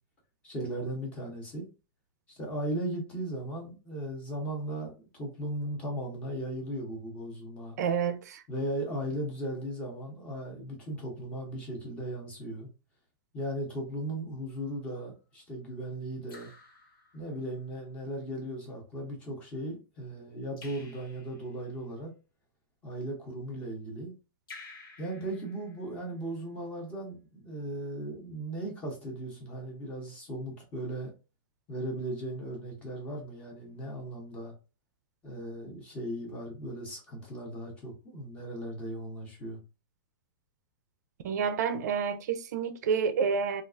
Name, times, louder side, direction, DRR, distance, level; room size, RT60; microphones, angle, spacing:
voice 1, 0.4-1.7 2.3-7.8 8.5-12.7 13.3-16.5 17.1-22.1 22.8-24.1 25.0-31.1 31.7-34.5 35.2-39.6, right 1 dB, 10° left, 0.7 m, -37 dB
voice 2, 7.8-8.4 41.2-43.6, right 6 dB, 50° right, 0.4 m, -29 dB
Raindrop / Drip, 14.5-15.0 16.3-17.6 20.6-21.7 24.5-26.2, left 3 dB, 65° left, 1.3 m, -52 dB
3.2 x 2.4 x 2.4 m
supercardioid pair, 180°, 12 cm